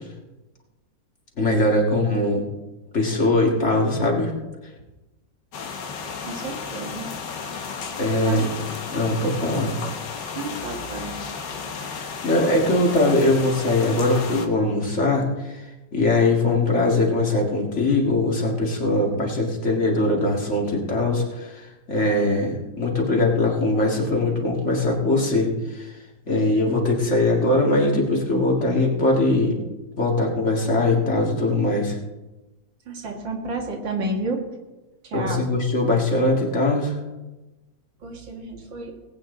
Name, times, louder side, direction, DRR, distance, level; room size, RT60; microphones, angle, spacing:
voice 1, 1.4-2.5 2.9-4.3 8.0-8.5 8.9-9.8 11.8-15.7 15.9-26.0 26.3-29.6 30.0-32.0 35.1-37.0, left 2 dB, 40° left, -1 dB, 2.3 m, -21 dB
sound 1, 5.5-14.5, left 5 dB, 70° left, 1.8 m, -33 dB
voice 2, 6.2-7.1 8.1-8.5 10.4-11.2 32.9-34.5 35.0-35.5 38.0-39.0, right 2 dB, 80° right, 1 dB, 2.5 m, -31 dB
19.0 x 8.9 x 3.9 m, 1.1 s
omnidirectional pair, 2.0 m